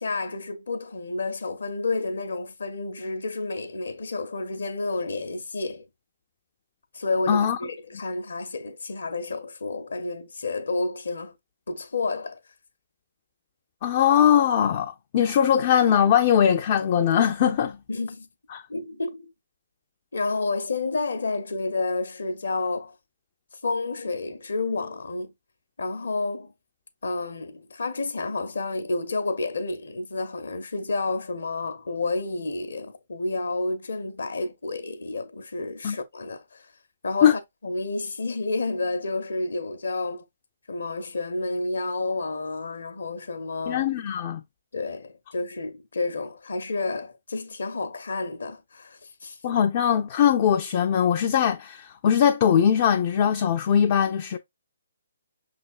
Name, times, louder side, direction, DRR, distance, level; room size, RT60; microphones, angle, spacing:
voice 1, 0.0-5.9 6.9-11.3 11.7-12.4 17.9-18.3 18.7-19.3 20.1-22.9 23.6-25.3 25.8-26.5 27.0-36.7 37.0-40.2 40.7-43.8 44.7-49.4, left 3 dB, 65° left, 0.8 m, -30 dB
voice 2, 7.3-7.6 13.8-17.8 18.5-18.6 35.8-36.0 37.2-37.3 43.7-44.4 49.4-54.4, left 8 dB, 35° left, 0.4 m, -21 dB
5.7 x 3.3 x 2.4 m
figure-of-eight pair, 135°, 0 cm